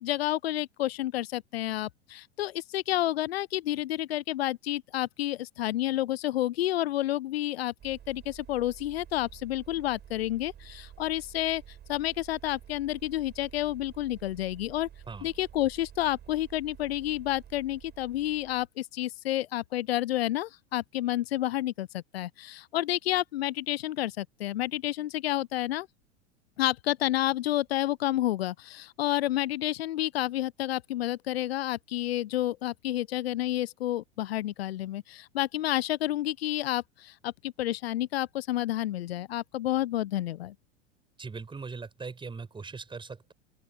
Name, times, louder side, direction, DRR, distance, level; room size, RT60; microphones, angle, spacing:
voice 1, 0.0-11.6 11.9-14.9 15.2-25.9 26.6-40.5, left 14 dB, 65° left, 0.7 m, -30 dB
sound 1, 7.8-18.7, right 10 dB, 30° right, 7.5 m, -50 dB
voice 2, 41.2-43.3, right 4 dB, 15° right, 5.4 m, -40 dB
figure-of-eight pair, 85°, 33 cm